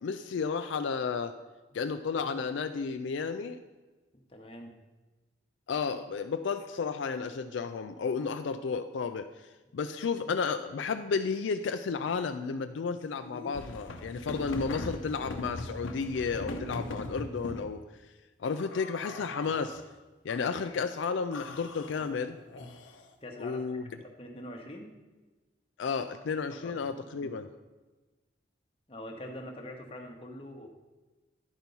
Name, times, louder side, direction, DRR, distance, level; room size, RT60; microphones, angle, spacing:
voice 1, 0.0-1.3 1.7-3.6 5.7-17.8 18.4-19.8 20.2-22.4 23.4-23.8 25.8-27.5, left 5 dB, 75° left, 8 dB, 0.4 m, -32 dB
voice 2, 4.1-4.8 22.0-22.1 23.2-23.6 23.9-24.9 26.5-26.8 27.2-27.4 28.9-30.7, left 1 dB, 30° left, 2 dB, 1.0 m, -44 dB
sound 1, 13.2-17.7 18.5-19.8 20.3-20.9 21.3-23.1, left 2 dB, 90° left, 0.7 m, -40 dB
10.5 x 4.5 x 5.3 m, 1.2 s
head